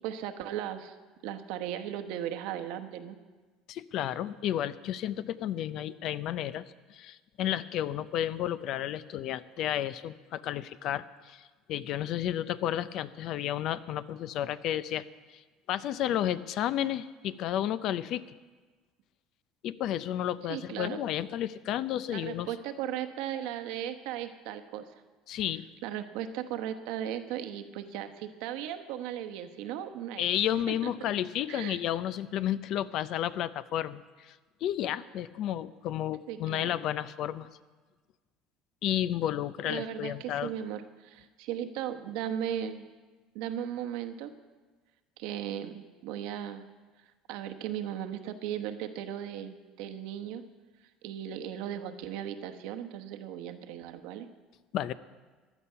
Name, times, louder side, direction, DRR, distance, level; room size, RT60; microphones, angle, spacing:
voice 1, 0.0-1.0 1.2-3.2 20.4-21.0 22.1-25.0 25.3-25.4 25.8-30.3 30.7-30.9 31.5-31.8 36.3-36.7 39.6-42.8 43.3-44.3 45.2-46.6 47.3-50.4 51.0-54.3, right 10 dB, 75° right, 7 dB, 1.0 m, -37 dB
voice 2, 3.7-6.6 6.9-15.0 15.3-15.4 15.7-18.3 19.6-22.5 25.3-25.6 30.2-34.4 34.6-37.5 38.8-40.5 54.7-54.9, left 11 dB, 60° left, 15 dB, 0.6 m, -32 dB
15.5 x 11.0 x 5.7 m, 1.3 s
supercardioid pair, 105°, 0 cm